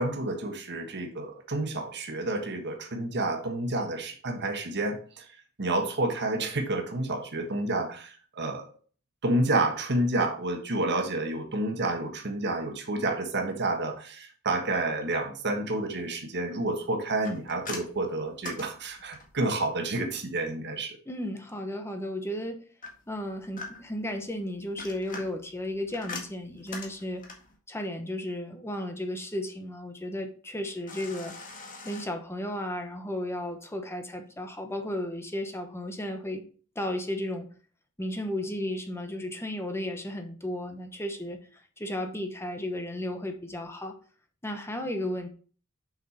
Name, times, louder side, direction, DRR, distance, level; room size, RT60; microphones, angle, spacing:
voice 1, 0.0-5.2 5.6-8.7 9.2-21.0, right 2 dB, 50° right, 4 dB, 1.4 m, -29 dB
sound 1, 17.2-19.5 22.8-24.1 24.6-27.6 30.9-32.0, left 3 dB, 40° left, 1.8 m, -42 dB
voice 2, 21.1-22.6 23.1-27.2 27.7-31.3 31.8-36.5 36.7-37.5 38.0-44.0 44.4-45.3, left 1 dB, 10° left, 5 dB, 1.1 m, -34 dB
7.2 x 5.8 x 4.3 m, 0.41 s
head